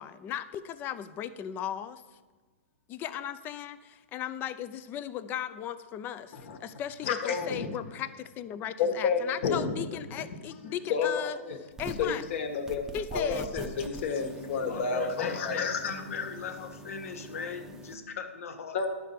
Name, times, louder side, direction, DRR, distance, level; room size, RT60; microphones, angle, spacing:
voice 1, 0.0-2.0 2.9-11.4 11.8-12.2 12.9-13.5, left 10 dB, 25° left, 13 dB, 0.5 m, -36 dB
voice 2, 7.0-7.8 8.8-9.8 10.2-10.3 10.6-11.6 12.0-15.9 18.7-18.9, left 5 dB, 55° left, 5 dB, 1.5 m, -30 dB
sound 1, 11.7-12.2 12.7-17.9, right 1 dB, 5° right, 0.8 m, -44 dB
voice 3, 14.5-18.9, left 6 dB, 70° left, 6 dB, 1.3 m, -39 dB
12.0 x 4.4 x 6.7 m, 1.3 s
hypercardioid pair, 135°, 8 cm